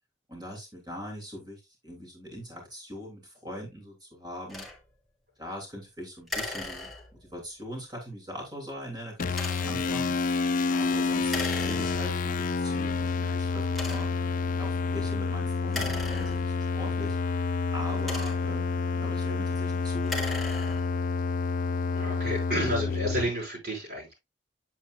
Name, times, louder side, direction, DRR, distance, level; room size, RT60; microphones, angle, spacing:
voice 1, 0.3-4.6 5.4-6.9 7.2-10.2 10.7-14.1 14.6-17.2 17.7-20.8, equal, 25° right, 3.3 m, -41 dB
sound 1, 4.5-4.8 6.3-7.3 9.3-9.8 11.3-12.3 13.0-13.1 13.7-14.3 15.6-16.8 17.7-18.6 19.9-21.0, left 2 dB, ahead, 2.1 m, -37 dB
sound 2, 9.2-23.3, left 4 dB, 45° left, 0.5 m, -29 dB
voice 2, 21.9-24.1, equal, 60° right, 5.4 m, -31 dB
8.3 x 7.5 x 2.3 m
head